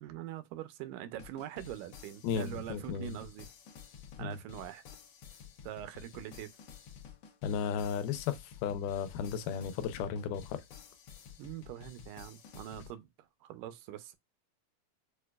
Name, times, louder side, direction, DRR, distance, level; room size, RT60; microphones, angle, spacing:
voice 1, 0.0-3.5 4.2-4.8 5.6-6.5 11.4-13.1 13.4-14.2, right 12 dB, 85° right, 2.2 m, -43 dB
sound 1, 1.2-12.9, left 8 dB, 70° left, 1.4 m, -52 dB
voice 2, 2.2-3.2 4.2-4.4 7.4-10.6, left 7 dB, 90° left, 2.2 m, -34 dB
6.4 x 2.2 x 2.3 m
omnidirectional pair, 3.7 m